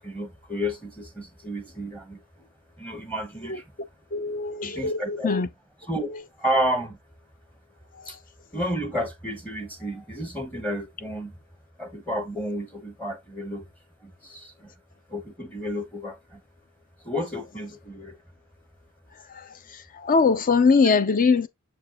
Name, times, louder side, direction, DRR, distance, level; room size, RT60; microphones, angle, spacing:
voice 1, 0.0-2.2 2.8-3.6 4.6-5.3 5.8-6.1 6.4-7.0 8.1-8.2 8.5-11.4 11.8-13.7 14.0-14.7 15.1-16.4 17.0-18.2, equal, 5° left, 1.1 m, -31 dB
voice 2, 4.1-5.5 20.0-21.5, left 4 dB, 40° left, 0.6 m, -21 dB
6.9 x 4.6 x 3.0 m
head